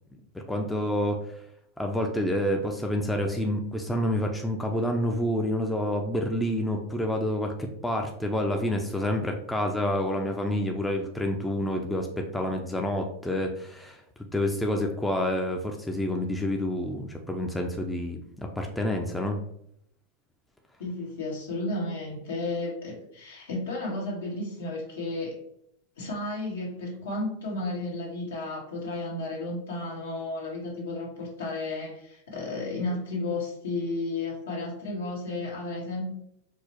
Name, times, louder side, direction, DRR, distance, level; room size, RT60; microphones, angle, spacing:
voice 1, 0.5-1.4 1.8-14.0 14.3-19.4, left 1 dB, 5° left, 2 dB, 0.4 m, -28 dB
voice 2, 20.8-25.4 26.0-36.1, left 2 dB, 85° left, -3 dB, 1.4 m, -33 dB
4.5 x 2.0 x 2.9 m, 0.74 s
hypercardioid pair, 120°, 0 cm